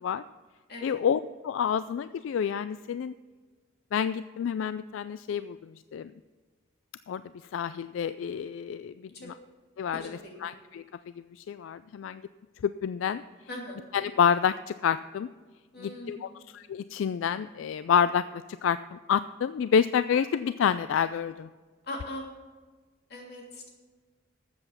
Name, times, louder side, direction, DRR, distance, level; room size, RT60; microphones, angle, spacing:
voice 1, 0.8-3.1 3.9-6.1 7.1-7.2 7.5-9.4 9.8-10.8 11.2-12.2 12.6-13.2 13.9-15.3 15.8-21.5, left 7 dB, 80° left, 14 dB, 0.3 m, -28 dB
voice 2, 9.9-10.5 13.5-13.8 15.7-16.4 21.8-22.2 23.1-23.6, left 1 dB, 50° left, -1 dB, 3.0 m, -40 dB
13.0 x 7.9 x 5.8 m, 1.4 s
head